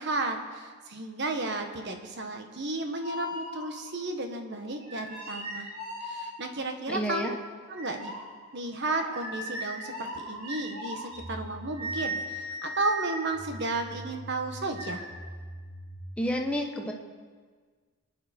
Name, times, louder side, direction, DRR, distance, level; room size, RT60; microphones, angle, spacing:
voice 1, 0.0-5.7 6.0-7.3 7.7-8.1 8.5-15.0, right 2 dB, 50° right, 5 dB, 1.4 m, -33 dB
sound 1, 3.0-4.0 4.8-6.7 7.7-16.0, equal, 70° right, 4.4 m, -38 dB
voice 2, 6.9-7.3 16.2-16.9, equal, 5° left, 1 dB, 1.0 m, -30 dB
24.0 x 9.8 x 4.4 m, 1.5 s
head